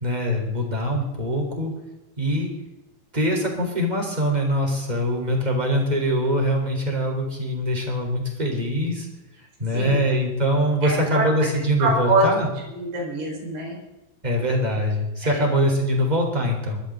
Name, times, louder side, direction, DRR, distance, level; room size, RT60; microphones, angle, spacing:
voice 1, 0.0-1.7 2.2-2.5 3.1-9.1 9.6-12.5 14.2-16.8, equal, 10° right, 1 dB, 3.3 m, -23 dB
voice 2, 10.8-11.3 11.8-12.3 12.7-13.8 15.2-15.5, right 2 dB, 70° right, -1 dB, 6.7 m, -24 dB
23.0 x 13.5 x 3.9 m, 1.0 s
omnidirectional pair, 4.8 m